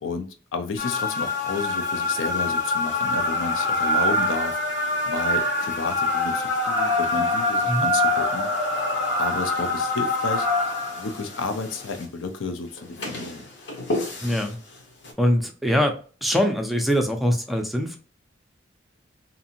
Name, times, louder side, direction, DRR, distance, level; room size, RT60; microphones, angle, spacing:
voice 1, 0.0-4.6 5.1-8.5 9.2-10.5 11.0-13.4, left 4 dB, 85° left, 6 dB, 0.5 m, -31 dB
sound 1, 0.8-12.0 12.8-14.5 15.0-15.1, left 2 dB, 65° left, 0.8 m, -25 dB
voice 2, 14.2-14.6 15.2-15.9 16.2-18.0, equal, ahead, 3 dB, 0.4 m, -23 dB
2.6 x 2.5 x 2.7 m, 0.38 s
head